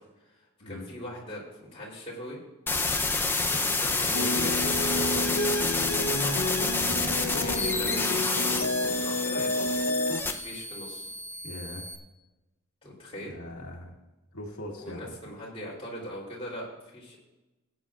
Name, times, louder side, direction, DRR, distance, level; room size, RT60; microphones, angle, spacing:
voice 1, 0.7-2.4 3.4-5.2 5.9-6.5 7.4-8.7 9.0-9.8 10.3-11.1 12.8-13.3 14.8-17.2, left 1 dB, 25° left, -5 dB, 3.5 m, -40 dB
sound 1, 2.7-12.0, left 3 dB, 10° left, 0.6 m, -29 dB
sound 2, 4.1-10.2, left 1 dB, 60° left, 0.8 m, -30 dB
voice 2, 11.4-11.9 13.2-13.9 14.3-15.3, left 1 dB, 85° left, -1 dB, 1.9 m, -41 dB
19.5 x 9.3 x 2.5 m, 1.0 s
head